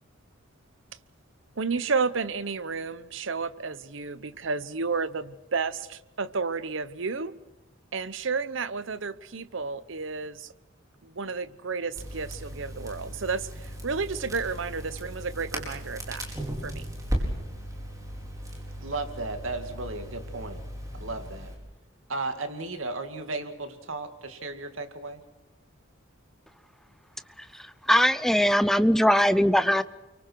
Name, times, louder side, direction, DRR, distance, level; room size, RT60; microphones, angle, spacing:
voice 1, 1.6-7.3 7.9-10.5 11.0-16.3 16.6-16.8, right 4 dB, 70° right, 15 dB, 0.9 m, -31 dB
Crackle, 12.0-21.5, equal, 20° right, 5.1 m, -36 dB
voice 2, 18.8-20.6 20.9-21.5 22.1-25.2, right 3 dB, 85° right, 7 dB, 2.4 m, -35 dB
voice 3, 27.9-29.8, equal, ahead, 14 dB, 0.6 m, -20 dB
30.0 x 24.0 x 4.7 m, 1.0 s
head